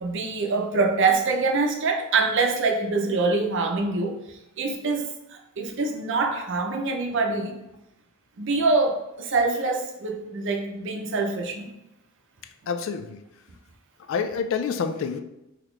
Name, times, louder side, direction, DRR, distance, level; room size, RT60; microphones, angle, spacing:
voice 1, 0.0-4.2 4.6-7.6 8.4-11.7, right 3 dB, 60° right, 2 dB, 0.6 m, -25 dB
voice 2, 12.7-13.2 14.1-15.2, left 6 dB, 65° left, 9 dB, 0.3 m, -27 dB
3.9 x 2.9 x 3.1 m, 0.90 s
head